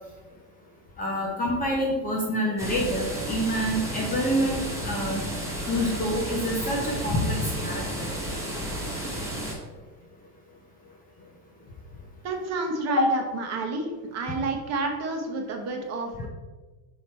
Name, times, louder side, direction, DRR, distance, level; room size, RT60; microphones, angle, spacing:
voice 1, 1.0-5.2 5.7-8.1 13.0-13.1, equal, 20° left, -2 dB, 0.5 m, -27 dB
sound 1, 2.6-9.5, right 1 dB, 5° right, 1.0 m, -32 dB
voice 2, 12.2-16.3, right 3 dB, 30° right, 3 dB, 0.9 m, -30 dB
5.7 x 4.8 x 4.3 m, 1.3 s
cardioid pair, 165°, 49 cm